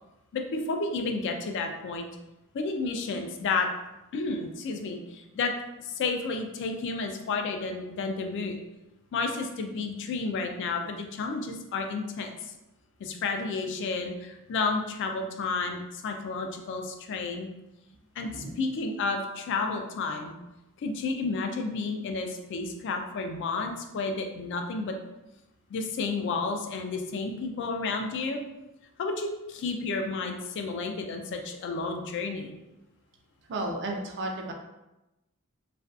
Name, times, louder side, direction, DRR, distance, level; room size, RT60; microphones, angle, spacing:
voice 1, 0.3-2.1 2.5-3.7 4.1-5.5 5.9-8.6 9.1-12.3 13.0-17.5 18.2-18.3 18.6-20.3 20.8-25.0 25.7-28.4 29.0-32.5, left 4 dB, 55° left, 4 dB, 0.3 m, -31 dB
voice 2, 18.2-18.5 33.5-34.5, right 2 dB, 55° right, 2 dB, 0.4 m, -33 dB
2.5 x 2.2 x 2.3 m, 0.96 s
head